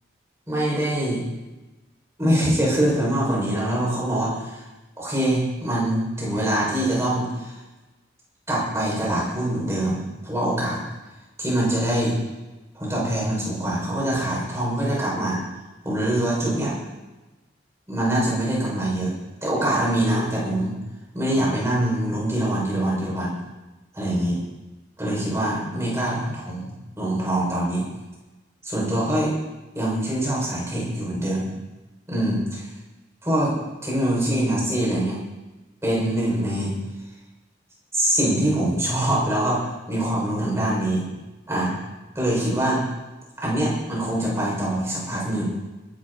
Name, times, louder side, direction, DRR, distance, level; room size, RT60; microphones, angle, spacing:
voice 1, 0.5-1.2 2.2-4.6 5.0-7.5 8.5-10.8 11.4-12.1 12.7-15.4 15.8-16.7 17.9-19.1 19.4-20.7 21.1-23.3 23.9-24.4 25.0-26.7 27.0-27.8 28.6-29.3 29.7-31.5 32.1-32.7 33.2-33.6 33.8-35.2 35.8-36.7 37.9-41.1 41.5-41.7 42.1-42.8 43.4-45.4, right 1 dB, 15° right, -5 dB, 6.1 m, -24 dB
20.5 x 12.0 x 4.3 m, 1.1 s
head